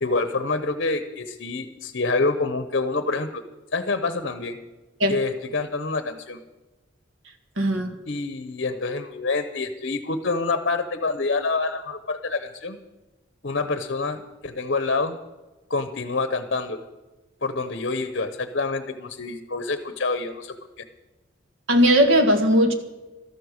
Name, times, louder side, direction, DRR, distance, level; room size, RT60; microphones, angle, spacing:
voice 1, 0.0-3.4 3.7-4.6 5.1-6.4 8.1-12.8 13.4-15.2 15.7-16.8 17.4-20.8, left 3 dB, 60° left, 9 dB, 0.9 m, -27 dB
voice 2, 7.6-7.9 21.7-22.7, equal, 90° right, 6 dB, 1.7 m, -18 dB
13.0 x 12.0 x 6.5 m, 1.1 s
head